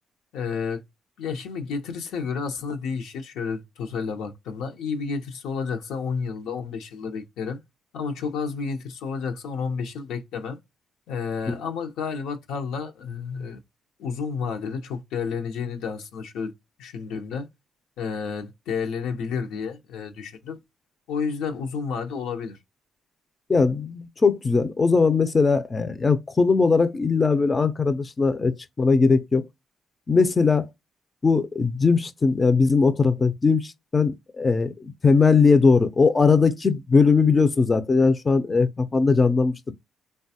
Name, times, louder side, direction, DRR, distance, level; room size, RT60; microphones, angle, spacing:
voice 1, 0.3-0.8 1.2-7.6 7.9-10.6 11.1-13.6 14.0-16.5 16.8-17.5 18.0-20.6 21.1-22.6, left 5 dB, 85° left, 0.7 m, -31 dB
voice 2, 23.5-29.5 30.1-30.7 31.2-34.7 35.0-39.7, left 4 dB, 30° left, 0.4 m, -20 dB
3.3 x 2.2 x 2.7 m
cardioid pair, 90°, 0 cm